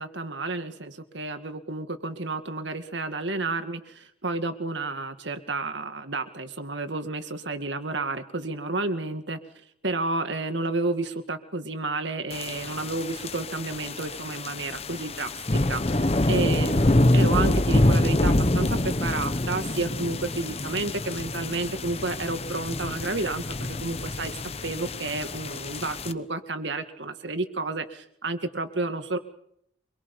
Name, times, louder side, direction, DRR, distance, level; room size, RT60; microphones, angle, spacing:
voice 1, 0.0-9.4 9.8-24.4 24.6-29.2, right 3 dB, 70° right, 8 dB, 2.1 m, -31 dB
sound 1, 12.3-26.1, left 1 dB, 30° left, 1.0 m, -26 dB
25.5 x 22.5 x 5.5 m, 0.71 s
head